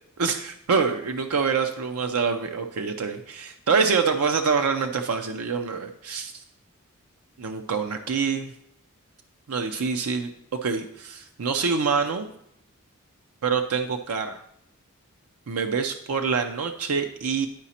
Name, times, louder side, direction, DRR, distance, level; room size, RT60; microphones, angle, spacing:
voice 1, 0.2-6.3 7.4-8.5 9.5-10.3 10.6-12.3 13.4-14.4 15.5-17.5, right 5 dB, 85° right, 6 dB, 0.6 m, -26 dB
10.5 x 4.9 x 4.2 m, 0.75 s
head